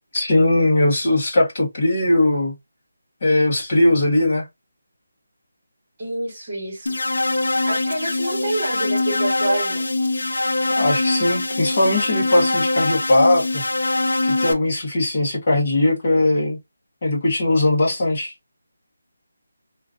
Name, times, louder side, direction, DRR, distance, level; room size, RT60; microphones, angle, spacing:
voice 1, 0.1-2.5 3.2-4.4 10.7-13.6 14.2-16.6 17.0-18.3, left 1 dB, 25° left, 1.1 m, -19 dB
voice 2, 6.0-6.9 7.7-9.9, right 1 dB, 15° right, 1.4 m, -27 dB
sound 1, 6.9-14.5, left 2 dB, 80° left, 0.6 m, -23 dB
2.9 x 2.5 x 2.4 m
figure-of-eight pair, 180°, 0 cm